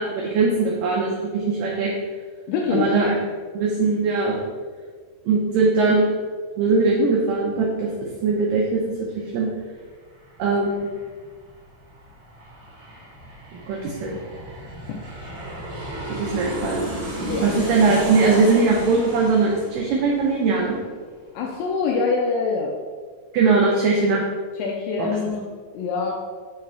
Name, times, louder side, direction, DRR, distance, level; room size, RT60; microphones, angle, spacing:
voice 1, 0.0-1.9 2.7-3.2 3.5-4.4 5.3-6.2 6.6-7.9 8.2-8.8 9.3-9.5 10.4-10.8 13.5-14.2 16.1-16.8 17.4-20.8 23.3-24.2 25.0-25.1, right 4 dB, 75° right, -3 dB, 2.0 m, -20 dB
voice 2, 2.5-2.9 17.3-17.6 21.3-22.7 24.6-25.5 25.7-26.1, left 4 dB, 90° left, 0 dB, 1.9 m, -24 dB
Aircraft, 9.5-9.6 9.8-21.1 21.4-21.5, right 1 dB, 55° right, 1.9 m, -33 dB
6.2 x 3.8 x 4.3 m, 1.5 s
omnidirectional pair, 4.6 m